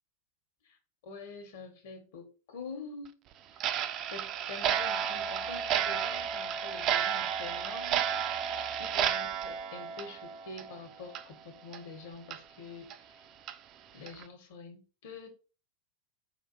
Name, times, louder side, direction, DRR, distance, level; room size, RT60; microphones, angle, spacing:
voice 1, 1.0-3.1 3.5-3.6 4.1-13.2 13.9-15.3, left 4 dB, 55° left, 1.0 m, -46 dB
Clock, 3.6-10.8 11.1-11.2 11.7-11.8 12.3-12.4 12.9-13.0 13.5-13.6 14.1-14.2, right 9 dB, 35° right, 0.3 m, -32 dB
4.9 x 2.4 x 2.8 m
figure-of-eight pair, 90°, 0 cm